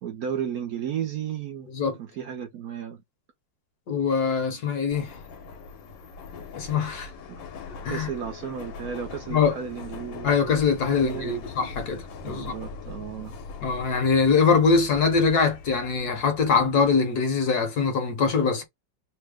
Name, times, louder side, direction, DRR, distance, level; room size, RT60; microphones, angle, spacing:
voice 1, 0.0-1.7 2.0-3.0 7.3-7.4 7.9-10.3 11.0-11.4 12.2-13.4, right 8 dB, 65° right, 0.9 m, -33 dB
voice 2, 3.9-5.1 6.5-7.1 7.8-8.1 9.3-9.6 10.2-12.5 13.6-18.6, left 5 dB, 65° left, 1.3 m, -23 dB
Subway metro underground, 4.9-16.9, left 4 dB, 80° left, 1.5 m, -41 dB
3.3 x 2.0 x 3.4 m
omnidirectional pair, 2.0 m